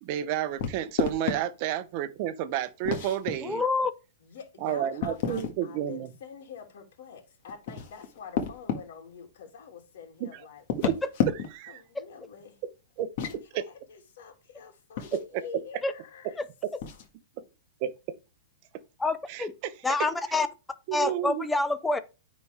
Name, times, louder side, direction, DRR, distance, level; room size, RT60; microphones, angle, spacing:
voice 1, 0.0-3.6 4.6-6.1 10.2-10.4 10.9-11.0 11.5-11.8 13.0-13.1 13.5-13.7 15.1-15.6 16.6-16.7 17.8-17.9 19.3-19.7 20.9-21.4, right 11 dB, 40° right, 0.8 m, -31 dB
sound 1, 0.6-1.4 2.8-3.3 5.0-5.6 7.5-8.8 10.6-11.7 13.0-13.4 15.0-15.2 16.8-17.1, left 7 dB, 45° left, 1.6 m, -30 dB
voice 2, 3.4-3.9 11.9-12.0 15.8-15.9 16.4-16.5 19.0-19.5 19.8-20.5 20.9-22.0, left 3 dB, 5° left, 0.6 m, -27 dB
voice 3, 4.2-10.6 11.7-12.6 13.2-13.6 13.9-16.4, left 6 dB, 65° left, 2.4 m, -46 dB
9.5 x 4.1 x 3.4 m
hypercardioid pair, 160°, 0 cm